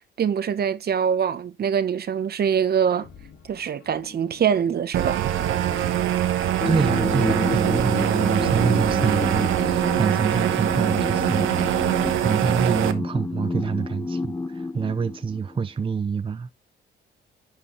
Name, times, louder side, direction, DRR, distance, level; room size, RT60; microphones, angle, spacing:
voice 1, 0.2-3.1 3.5-5.3, right 8 dB, 50° right, 1.0 m, -24 dB
sound 1, 2.7-6.9, left 6 dB, 65° left, 2.8 m, -46 dB
sound 2, 4.9-12.9, right 12 dB, 80° right, 1.2 m, -23 dB
sound 3, 6.6-15.6, left 3 dB, 15° left, 0.3 m, -30 dB
voice 2, 6.6-16.5, right 5 dB, 25° right, 0.6 m, -26 dB
11.0 x 4.8 x 3.0 m
cardioid pair, 90°, 20 cm